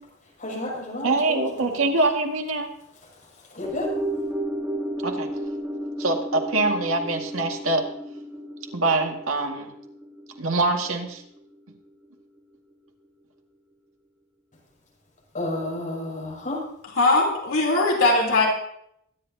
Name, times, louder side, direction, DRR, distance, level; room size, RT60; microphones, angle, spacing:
voice 1, 0.4-1.9 3.5-3.9 15.3-16.6, left 1 dB, 40° left, -4 dB, 6.7 m, -31 dB
voice 2, 1.0-2.7 5.0-5.3 6.0-7.8 8.7-9.7 10.4-11.2, right 2 dB, 75° right, 2 dB, 1.9 m, -24 dB
sound 1, 3.6-12.1 12.4-12.5, right 1 dB, 10° right, 2.8 m, -33 dB
voice 3, 17.0-18.5, left 2 dB, 70° left, -1 dB, 3.5 m, -20 dB
23.0 x 10.5 x 2.8 m, 0.73 s
head